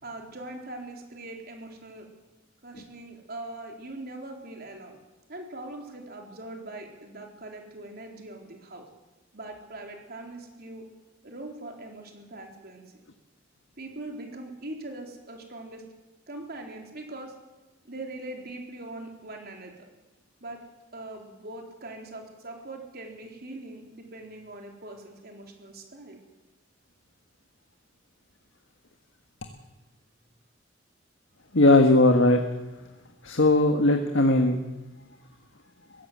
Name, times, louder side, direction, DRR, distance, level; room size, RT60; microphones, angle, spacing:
voice 1, 0.0-2.1 2.6-5.0 5.3-8.9 9.3-10.8 11.2-12.8 13.8-15.8 16.3-17.3 17.8-19.9 20.4-20.6 20.9-26.2, right 2 dB, 50° right, 2 dB, 3.9 m, -41 dB
voice 2, 31.5-32.4 33.2-34.6, left 2 dB, 75° left, 5 dB, 1.6 m, -19 dB
22.0 x 16.0 x 7.6 m, 1.1 s
head